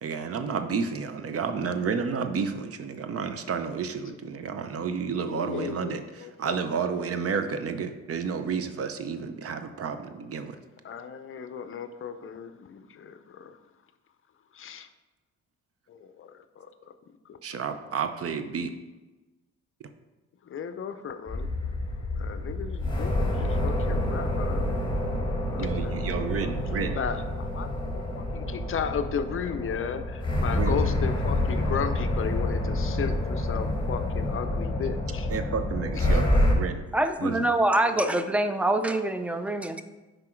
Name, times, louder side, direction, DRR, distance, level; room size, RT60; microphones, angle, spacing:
voice 1, 0.0-10.6 17.4-18.7 25.6-27.0 30.5-30.8 35.3-36.8 37.2-37.5, right 6 dB, 50° right, 8 dB, 0.7 m, -31 dB
voice 2, 5.3-6.6 6.9-7.0 10.8-13.6 14.5-14.9 15.9-16.7 17.3-17.4 20.4-21.5 22.2-24.9 25.3-25.9 26.4-26.5 26.9-35.3 36.1-36.2 37.8-38.2, left 7 dB, 45° left, 10 dB, 0.5 m, -35 dB
sound 1, 21.3-36.5, left 1 dB, 15° left, 1.6 m, -28 dB
voice 3, 36.9-39.8, right 1 dB, 5° right, 9 dB, 0.5 m, -25 dB
6.0 x 5.0 x 4.4 m, 1.2 s
cardioid pair, 90°, 30 cm